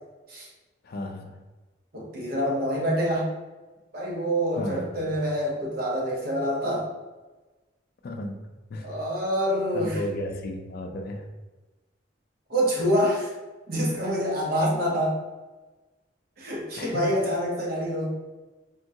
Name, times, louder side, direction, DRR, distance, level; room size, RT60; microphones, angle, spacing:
voice 1, 0.8-1.4 4.6-5.0 8.0-8.4 8.7-9.0 9.7-11.3 16.8-17.0, left 1 dB, 55° left, 4 dB, 0.4 m, -34 dB
voice 2, 1.9-3.3 3.9-6.9 8.8-10.0 12.5-13.3 13.7-15.2 16.4-18.1, equal, 55° right, -2 dB, 0.8 m, -26 dB
3.6 x 2.2 x 2.7 m, 1.2 s
head